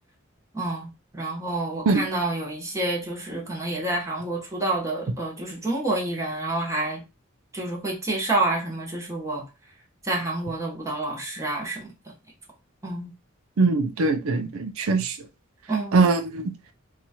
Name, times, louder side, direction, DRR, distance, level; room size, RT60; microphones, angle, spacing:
voice 1, 0.5-0.9 1.1-7.0 7.5-9.4 10.0-11.9 12.8-13.1 15.7-16.1, right 2 dB, 15° right, 1.1 m, -28 dB
voice 2, 13.6-15.2 15.9-16.5, right 3 dB, 85° right, 0.4 m, -22 dB
2.9 x 2.4 x 4.1 m
head